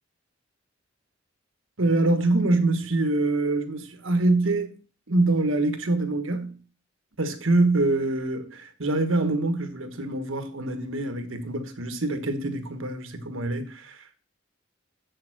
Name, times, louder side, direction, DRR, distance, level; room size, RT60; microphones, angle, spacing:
voice 1, 1.8-4.7 5.1-6.5 7.2-14.2, right 2 dB, 80° right, 1.5 m, -25 dB
7.5 x 6.7 x 6.1 m
head